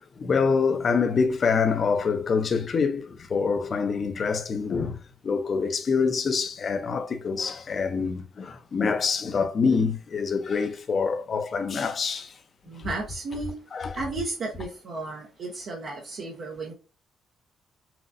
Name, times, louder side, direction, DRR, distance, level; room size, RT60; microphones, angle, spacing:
voice 1, 0.0-5.0 5.2-12.4 12.8-12.9 13.7-14.0, left 5 dB, 50° left, 0.7 m, -26 dB
voice 2, 12.6-13.6 13.9-16.7, right 3 dB, 60° right, 1.0 m, -34 dB
5.9 x 2.5 x 2.6 m
cardioid pair, 80°, 0 cm